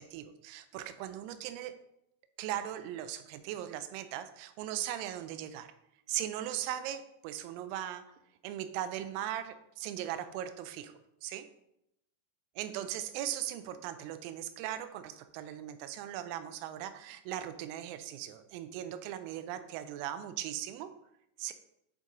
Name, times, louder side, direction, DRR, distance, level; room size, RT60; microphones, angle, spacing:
voice 1, 0.0-1.7 2.4-5.7 6.1-8.0 8.4-10.9 11.2-11.5 12.6-20.9 21.4-21.5, right 11 dB, 85° right, 9 dB, 3.3 m, -39 dB
9.1 x 5.4 x 3.8 m, 0.82 s
omnidirectional pair, 6.0 m